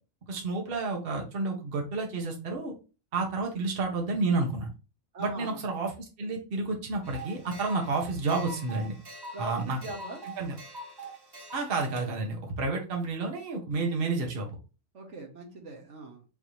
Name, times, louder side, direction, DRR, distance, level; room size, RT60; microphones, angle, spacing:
voice 1, 0.3-2.7 3.1-4.7 5.2-5.9 6.2-9.0 9.4-9.8 10.4-10.6 11.5-14.5, right 3 dB, 50° right, 1 dB, 1.2 m, -30 dB
voice 2, 5.1-5.6 9.3-10.2 14.9-16.2, right 2 dB, 70° right, 1 dB, 1.4 m, -41 dB
sound 1, 7.0-12.1, right 2 dB, 25° right, 0.7 m, -43 dB
5.4 x 2.7 x 3.1 m, 0.32 s
omnidirectional pair, 1.3 m